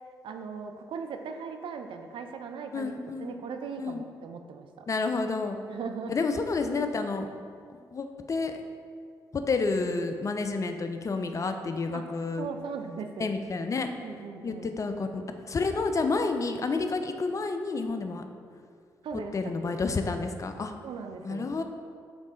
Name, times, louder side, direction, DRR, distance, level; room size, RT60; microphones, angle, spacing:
voice 1, 0.2-2.9 3.2-4.9 5.7-6.1 11.9-12.0 12.4-13.3 14.0-14.7 19.0-19.3 20.8-21.6, right 5 dB, 60° right, 6 dB, 0.4 m, -38 dB
voice 2, 2.7-3.3 3.8-4.0 4.9-5.6 6.1-7.3 7.9-8.5 9.3-12.5 13.2-13.9 14.4-18.2 19.3-20.7 21.2-21.6, left 3 dB, 35° left, 7 dB, 0.4 m, -30 dB
3.5 x 3.1 x 3.8 m, 2.2 s
hypercardioid pair, 40°, 10 cm